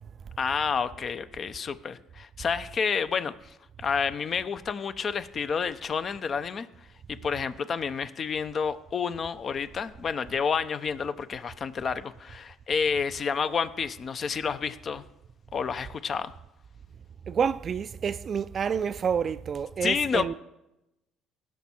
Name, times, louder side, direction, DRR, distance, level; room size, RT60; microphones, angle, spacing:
voice 1, 0.4-6.7 7.1-15.1 15.5-16.3 19.8-20.3, left 6 dB, 45° left, 0.7 m, -29 dB
voice 2, 17.3-20.3, right 7 dB, 45° right, 0.4 m, -28 dB
17.0 x 6.2 x 4.5 m
supercardioid pair, 70°, 0 cm